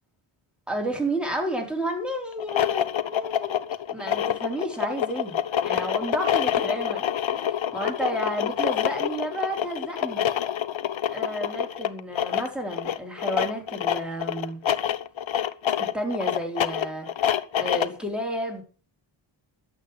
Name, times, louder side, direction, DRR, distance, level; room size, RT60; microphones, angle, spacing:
voice 1, 0.7-5.4 5.6-10.3 11.1-14.6 15.8-17.1 17.6-18.6, right 1 dB, ahead, 4.6 m, -31 dB
sound 1, 2.3-18.0, left 9 dB, 70° left, 1.0 m, -27 dB
11.5 x 8.2 x 6.1 m
cardioid pair, 75°, 49 cm